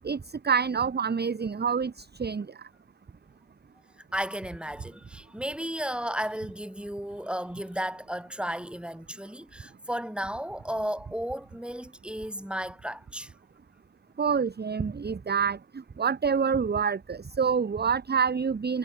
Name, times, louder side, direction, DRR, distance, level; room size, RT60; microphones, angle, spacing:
voice 1, 0.4-2.5 14.2-15.6 16.0-18.8, right 6 dB, 20° right, 0.5 m, -27 dB
voice 2, 4.1-13.3, equal, ahead, 1.8 m, -34 dB
wide cardioid pair, 165°, 49 cm